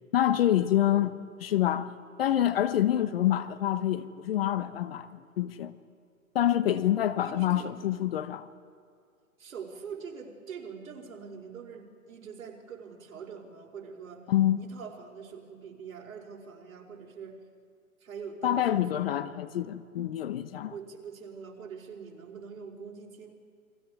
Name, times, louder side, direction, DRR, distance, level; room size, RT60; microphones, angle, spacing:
voice 1, 0.1-1.9 2.2-5.7 6.3-8.5 14.3-14.6 18.4-20.7, left 12 dB, 45° left, 0.9 m, -27 dB
voice 2, 7.2-7.7 9.4-14.3 14.6-17.4 18.0-18.8 20.7-23.3, right 6 dB, 70° right, 4.4 m, -44 dB
29.5 x 23.0 x 4.8 m
hypercardioid pair, 155°, 43 cm